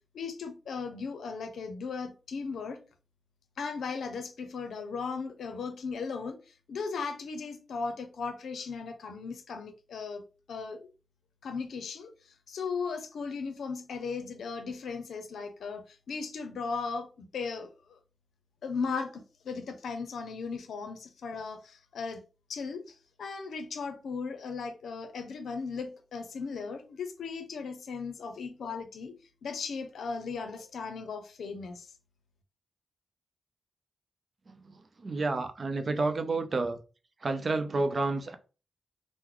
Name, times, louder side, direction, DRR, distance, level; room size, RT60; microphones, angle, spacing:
voice 1, 0.1-2.8 3.6-6.4 6.7-10.2 10.5-10.9 11.4-12.1 12.5-18.0 18.6-22.2 22.5-29.1 29.4-31.9, left 5 dB, 85° left, 0.6 m, -37 dB
voice 2, 35.0-36.8 37.2-38.4, right 3 dB, 50° right, 0.5 m, -29 dB
3.0 x 2.1 x 3.7 m
cardioid pair, 70°, 0 cm